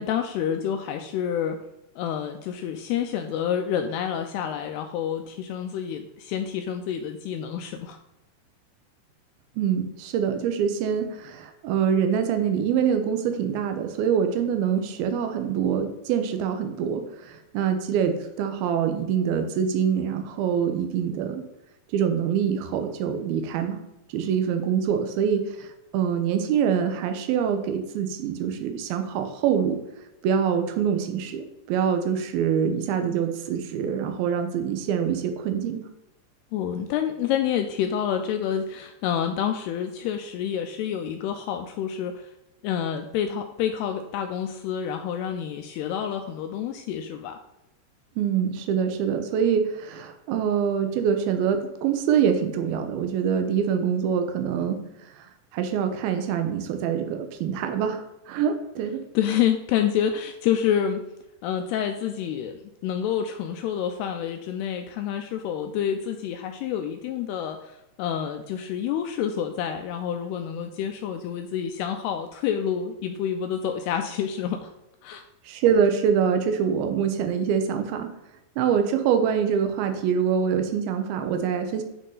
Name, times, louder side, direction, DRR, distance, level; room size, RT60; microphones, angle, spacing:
voice 1, 0.0-1.6 2.0-8.0 36.5-42.3 42.6-47.4 59.1-61.0 61.4-74.7 75.0-75.2, left 9 dB, 85° left, 6 dB, 2.3 m, -28 dB
voice 2, 9.6-21.4 21.9-23.8 24.1-29.8 30.2-35.8 48.2-55.3 55.5-59.0 75.4-78.1 78.6-81.8, right 7 dB, 85° right, 6 dB, 2.1 m, -25 dB
9.9 x 4.2 x 3.9 m, 0.92 s
omnidirectional pair, 5.2 m